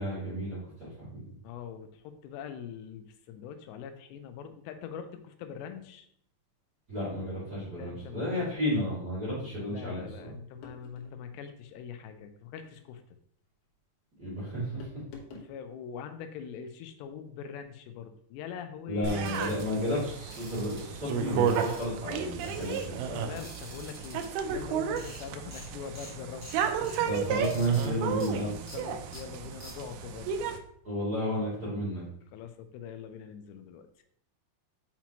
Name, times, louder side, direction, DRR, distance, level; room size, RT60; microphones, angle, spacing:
voice 1, 0.0-1.3 6.9-10.1 14.2-14.9 18.9-23.2 27.1-28.5 30.8-32.1, equal, 30° right, -9 dB, 2.0 m, -32 dB
voice 2, 1.4-6.1 7.8-8.5 9.7-13.0 15.3-19.6 23.2-27.1 28.1-28.2 28.7-30.3 32.3-34.0, left 8 dB, 85° left, 8 dB, 2.8 m, -43 dB
sound 1, 10.6-11.2 12.5-12.9 14.8-15.5, left 5 dB, 70° left, 2.8 m, -48 dB
sound 2, 19.0-30.6, right 7 dB, 85° right, 2.3 m, -33 dB
sound 3, 19.2-19.6 20.3-20.8 21.5-22.1 22.4-22.9 23.4-24.3 24.7-24.8 25.0-25.2 25.5-25.7 25.9-26.1 26.4-27.0 27.4-27.9 28.2-28.3 28.7-28.8 29.1-29.2 29.6-29.7, equal, 5° left, 0.9 m, -48 dB
6.0 x 5.8 x 2.9 m, 0.66 s
omnidirectional pair, 5.0 m